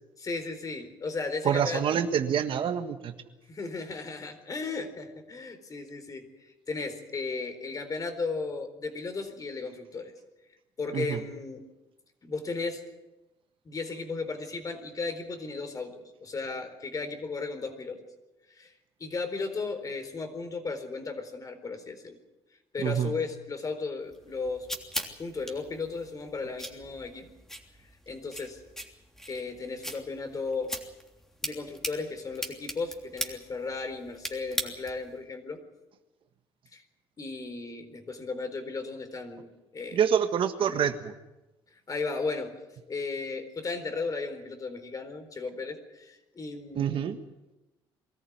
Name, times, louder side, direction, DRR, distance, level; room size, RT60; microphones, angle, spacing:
voice 1, 0.2-2.0 3.5-10.1 10.8-11.6 12.2-12.8 13.6-18.1 18.5-18.7 19.0-22.2 22.7-24.7 25.2-27.3 28.1-28.6 29.3-30.7 31.4-35.6 36.7-36.8 37.2-40.0 40.6-40.8 41.9-42.6 42.9-47.1, left 4 dB, 35° left, 7 dB, 4.2 m, -35 dB
voice 2, 1.4-3.1 10.9-11.2 22.8-23.1 39.9-41.1 46.7-47.2, right 8 dB, 60° right, 8 dB, 1.6 m, -26 dB
sound 1, 24.1-35.1, equal, 5° left, 3.2 m, -40 dB
23.0 x 14.0 x 9.5 m, 1.0 s
cardioid pair, 90°, 10 cm